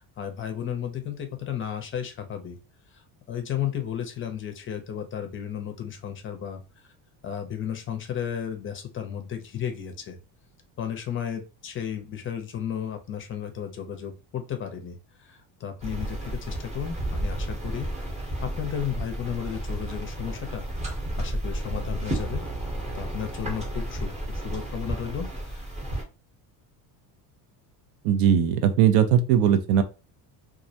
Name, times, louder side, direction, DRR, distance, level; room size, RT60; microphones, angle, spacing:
voice 1, 0.0-2.6 2.9-6.6 7.2-10.2 10.8-20.7 21.2-22.4 22.9-25.7, left 9 dB, 30° left, 6 dB, 0.5 m, -34 dB
sound 1, 15.8-26.0, right 1 dB, 15° right, 0.7 m, -32 dB
voice 2, 28.0-29.8, right 8 dB, 85° right, 9 dB, 0.5 m, -19 dB
2.3 x 2.1 x 2.6 m, 0.31 s
cardioid pair, 125°, 41 cm